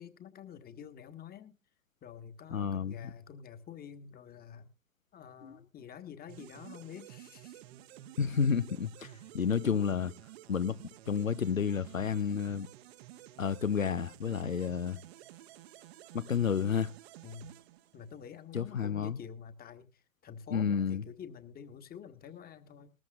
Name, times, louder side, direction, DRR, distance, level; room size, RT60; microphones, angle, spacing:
voice 1, 0.0-1.6 2.0-4.7 5.1-7.6 17.2-17.5 17.9-22.9, left 8 dB, 25° left, 1.6 m, -48 dB
voice 2, 2.5-3.0 5.4-5.6 8.2-10.1 10.5-12.7 13.4-15.0 16.1-16.9 18.5-19.2 20.5-21.0, left 6 dB, 90° left, 0.8 m, -31 dB
sound 1, 6.3-18.4, right 13 dB, 50° right, 1.1 m, -52 dB
19.5 x 14.0 x 2.4 m
figure-of-eight pair, 95°, 39 cm